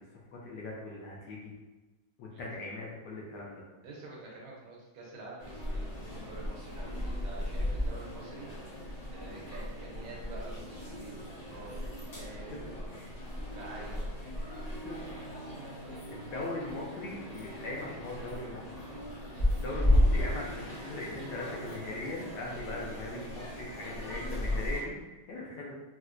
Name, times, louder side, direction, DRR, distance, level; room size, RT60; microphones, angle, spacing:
voice 1, 0.0-1.5 2.2-3.6 12.5-12.6 12.9-13.1 14.8-15.0 16.1-18.6 19.5-25.7, left 2 dB, 70° left, -3 dB, 1.1 m, -40 dB
voice 2, 3.8-8.5 9.1-12.9 13.5-14.1, right 2 dB, 80° right, -3 dB, 1.5 m, -48 dB
sound 1, 5.4-24.8, left 1 dB, 50° left, 0.4 m, -34 dB
4.3 x 2.1 x 2.4 m, 1.2 s
omnidirectional pair, 2.1 m